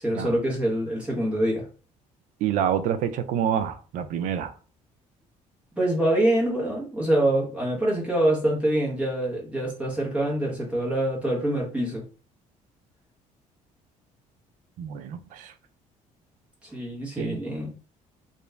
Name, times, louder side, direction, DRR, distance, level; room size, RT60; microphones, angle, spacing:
voice 1, 0.0-1.7 5.8-12.0 16.6-17.7, right 1 dB, 10° right, 1.2 m, -25 dB
voice 2, 2.4-4.5 14.8-15.5 17.2-17.4, right 9 dB, 70° right, 0.4 m, -27 dB
2.9 x 2.5 x 3.3 m
cardioid pair, 160°, 14 cm